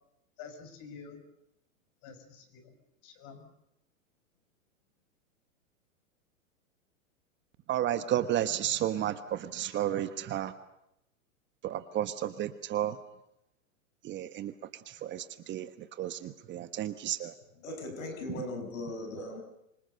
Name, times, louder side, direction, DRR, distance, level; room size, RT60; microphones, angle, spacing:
voice 1, 0.4-1.2 2.0-2.8 3.0-3.5, left 5 dB, 45° left, 9 dB, 5.5 m, -48 dB
voice 2, 7.7-10.5 11.6-13.0 14.0-17.3, right 11 dB, 25° right, 11 dB, 1.2 m, -32 dB
voice 3, 17.6-19.4, left 2 dB, 70° left, 7 dB, 6.1 m, -38 dB
26.0 x 24.5 x 6.7 m, 0.82 s
hypercardioid pair, 115°, 41 cm